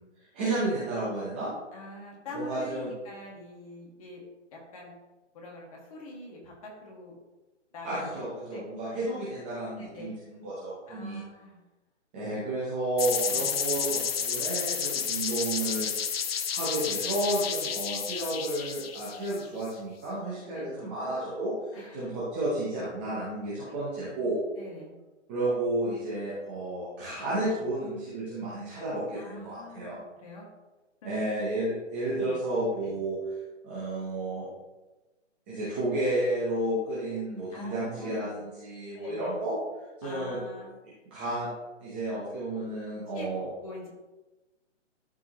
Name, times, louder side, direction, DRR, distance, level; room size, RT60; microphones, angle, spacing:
voice 1, 0.3-1.5 2.3-2.9 7.8-11.2 12.1-15.9 16.5-24.4 25.3-29.9 31.0-33.2 33.6-34.5 35.5-39.6 40.0-40.4 41.1-41.5 41.8-43.5, right 1 dB, 10° right, -10 dB, 0.8 m, -32 dB
voice 2, 1.7-4.2 4.5-4.9 5.3-7.1 7.7-8.2 8.5-8.6 9.7-10.2 10.9-11.6 13.2-13.4 20.4-20.7 21.7-22.1 24.6-24.9 29.1-30.5 31.0-31.2 32.1-32.3 32.8-33.0 37.5-38.3 38.9-39.4 40.0-40.7 43.1-43.3 43.6-43.9, left 1 dB, 30° left, -3 dB, 2.0 m, -44 dB
sound 1, 13.0-19.7, left 7 dB, 55° left, 0.6 m, -31 dB
12.5 x 4.8 x 3.0 m, 1.1 s
hypercardioid pair, 170°, 36 cm